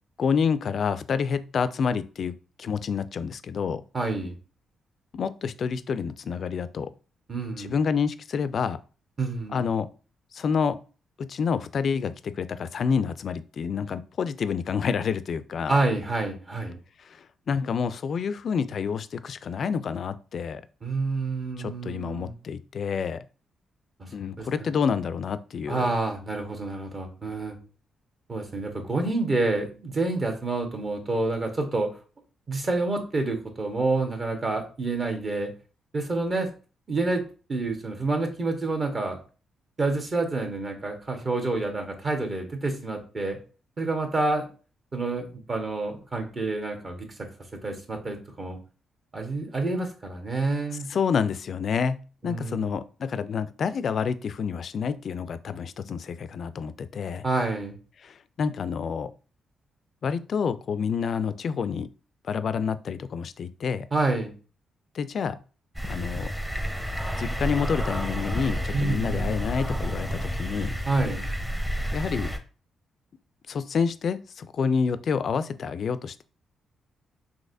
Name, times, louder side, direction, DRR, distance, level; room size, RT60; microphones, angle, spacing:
voice 1, 0.2-3.8 5.1-6.9 7.6-8.8 9.5-9.9 10.3-10.8 11.2-15.8 17.0-20.6 21.6-23.2 24.1-25.9 50.9-52.0 52.2-57.2 58.0-59.1 60.0-61.9 62.2-63.9 64.9-65.4 65.9-66.3 67.2-70.7 71.9-72.3 73.5-76.2, left 6 dB, 60° left, 13 dB, 0.3 m, -28 dB
voice 2, 3.9-4.4 7.3-7.7 9.2-9.7 15.7-16.8 20.8-22.3 24.0-24.1 24.4-24.7 25.7-27.6 28.3-31.9 32.5-35.5 35.9-36.5 36.9-37.2 37.5-39.2 39.8-43.4 43.8-44.5 44.9-47.1 47.6-48.6 49.1-50.9 52.2-52.8 57.2-57.7 63.9-64.3 68.7-69.4 70.9-71.3, right 3 dB, 45° right, 3 dB, 1.2 m, -28 dB
sound 1, 65.7-72.4, equal, 10° right, 0.8 m, -30 dB
4.0 x 2.9 x 2.6 m, 0.36 s
supercardioid pair, 50°, 0 cm